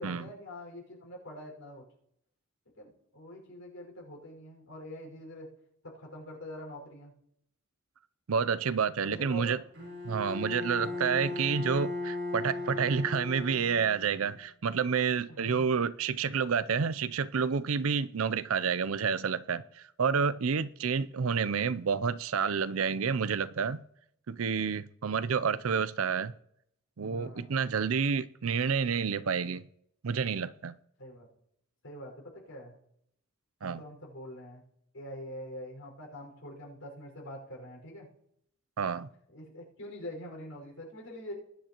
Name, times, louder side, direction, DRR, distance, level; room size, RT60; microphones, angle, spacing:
voice 1, 0.0-1.9 2.8-5.5 5.8-7.1 9.0-9.6 10.8-11.5 15.3-15.7 27.0-27.5 31.0-31.3 31.8-32.8 33.6-34.6 34.9-38.1 39.3-41.3, left 1 dB, 90° left, 5.4 m, -44 dB
voice 2, 8.3-9.6 10.0-23.8 24.3-26.3 27.0-29.6 30.0-30.7 33.6-33.8 38.8-39.1, right 6 dB, 90° right, 0.5 m, -29 dB
Bowed string instrument, 9.7-14.3, left 2 dB, 60° right, 4.8 m, -37 dB
20.0 x 10.0 x 3.0 m
head